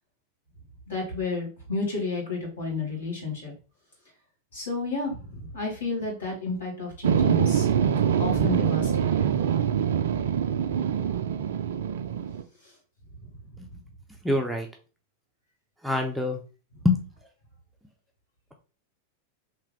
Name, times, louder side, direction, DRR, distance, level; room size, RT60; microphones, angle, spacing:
voice 1, 0.9-3.5 4.5-9.3, left 3 dB, 70° left, -3 dB, 1.9 m, -31 dB
sound 1, 7.0-12.4, right 8 dB, 60° right, 0.3 m, -24 dB
voice 2, 14.2-14.7 15.8-16.4 16.8-17.0, left 2 dB, ahead, 2 dB, 0.5 m, -24 dB
3.4 x 2.8 x 3.3 m, 0.36 s
figure-of-eight pair, 90°, 0 cm